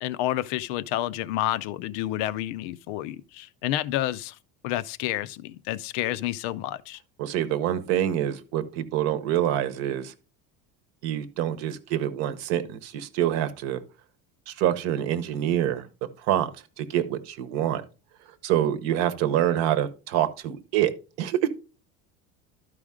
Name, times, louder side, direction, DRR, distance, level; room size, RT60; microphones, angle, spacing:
voice 1, 0.0-4.4 4.6-7.0, left 14 dB, 75° left, 0.6 m, -29 dB
voice 2, 7.2-10.1 11.0-13.8 14.5-15.9 16.3-16.5 16.8-17.8 18.4-20.9 21.2-21.5, right 11 dB, 55° right, 0.9 m, -26 dB
12.0 x 5.0 x 3.7 m
cardioid pair, 170°, 32 cm